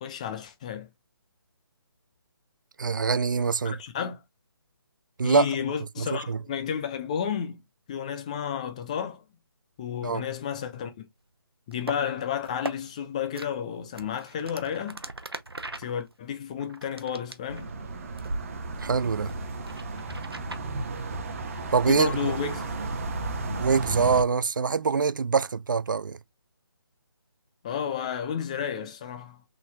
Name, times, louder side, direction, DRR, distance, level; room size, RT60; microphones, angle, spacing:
voice 1, 0.0-0.9 3.6-4.2 5.2-7.6 7.9-9.2 9.8-10.9 11.7-15.0 15.8-17.7 21.9-22.6 27.6-29.4, left 8 dB, 15° left, 0.4 m, -31 dB
voice 2, 2.8-3.8 5.2-5.5 6.0-6.4 10.0-10.2 18.8-19.3 21.7-22.3 23.6-26.2, right 5 dB, 55° right, 0.4 m, -24 dB
sound 1, 11.7-12.0 12.5-12.8 13.3-13.5 14.0-17.8 18.2-18.4 18.8-20.6, right 2 dB, 85° right, 0.8 m, -38 dB
sound 2, 17.5-24.2, right 3 dB, 35° right, 0.9 m, -34 dB
5.6 x 3.8 x 2.3 m
figure-of-eight pair, 145°, 12 cm